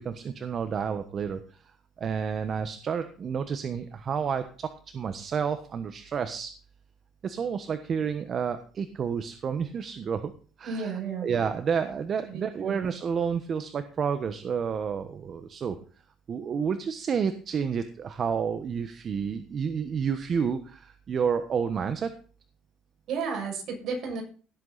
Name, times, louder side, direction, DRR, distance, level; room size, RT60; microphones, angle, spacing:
voice 1, 0.0-1.6 2.0-6.5 7.2-10.3 10.6-15.8 16.3-22.1, right 6 dB, 45° right, 9 dB, 1.2 m, -30 dB
voice 2, 10.6-11.3 12.3-12.8 23.1-24.2, right 5 dB, 60° right, 1 dB, 6.4 m, -33 dB
17.0 x 8.0 x 4.1 m, 0.41 s
supercardioid pair, 95°, 0 cm